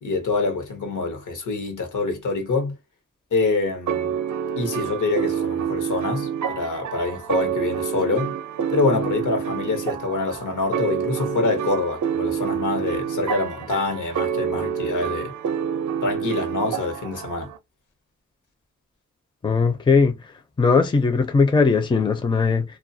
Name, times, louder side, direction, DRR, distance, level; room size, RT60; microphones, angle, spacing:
voice 1, 0.0-2.8 3.3-4.1 4.6-8.3 8.7-15.3 16.0-17.5, left 3 dB, 75° left, 1.0 m, -25 dB
sound 1, 3.9-17.6, right 8 dB, 70° right, 0.5 m, -27 dB
voice 2, 19.4-20.2 20.6-22.6, left 4 dB, 15° left, 0.4 m, -19 dB
2.3 x 2.3 x 2.6 m
wide cardioid pair, 115°, 31 cm